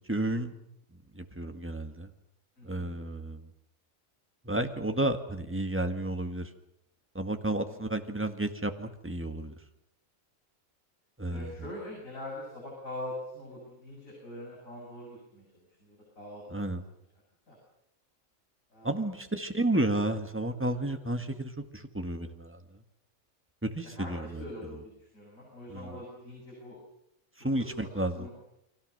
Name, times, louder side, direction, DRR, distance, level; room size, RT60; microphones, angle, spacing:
voice 1, 0.1-0.5 1.2-2.1 2.6-3.4 4.5-6.5 7.2-9.5 11.2-11.5 16.5-16.8 18.8-22.6 23.6-24.4 25.7-25.9 27.4-28.3, right 1 dB, 10° right, 6 dB, 1.7 m, -32 dB
voice 2, 2.6-3.0 7.7-7.8 11.3-16.7 17.5-17.6 18.7-19.1 23.8-26.8 27.4-27.9 28.1-28.3, left 1 dB, 70° left, -3 dB, 8.2 m, -43 dB
30.0 x 23.5 x 6.7 m, 0.79 s
omnidirectional pair, 1.4 m